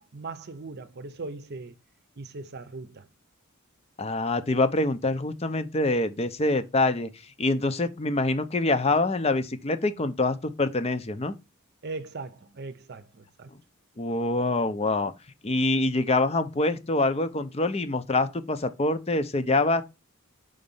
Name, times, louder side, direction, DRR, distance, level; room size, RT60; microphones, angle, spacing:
voice 1, 0.0-1.8 2.2-3.1 11.8-13.5, right 3 dB, 50° right, 0.7 m, -39 dB
voice 2, 4.0-11.3 14.0-15.1 15.4-19.8, left 2 dB, 30° left, 0.6 m, -25 dB
5.2 x 3.9 x 5.4 m
head